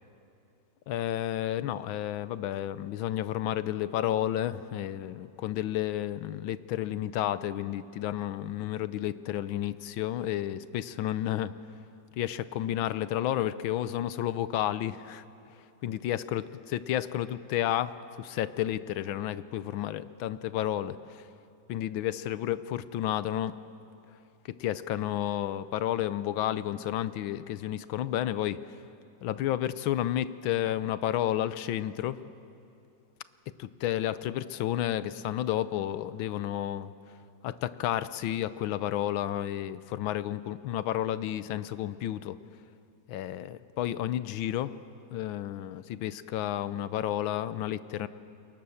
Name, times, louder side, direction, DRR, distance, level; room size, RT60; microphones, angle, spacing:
voice 1, 0.9-11.5 12.2-15.6 15.8-21.3 21.7-23.5 24.5-28.6 29.2-32.2 33.6-36.9 37.4-42.4 43.1-44.8 45.1-48.1, left 12 dB, 90° left, 14 dB, 1.5 m, -31 dB
28.5 x 23.0 x 7.1 m, 2.7 s
omnidirectional pair, 2.1 m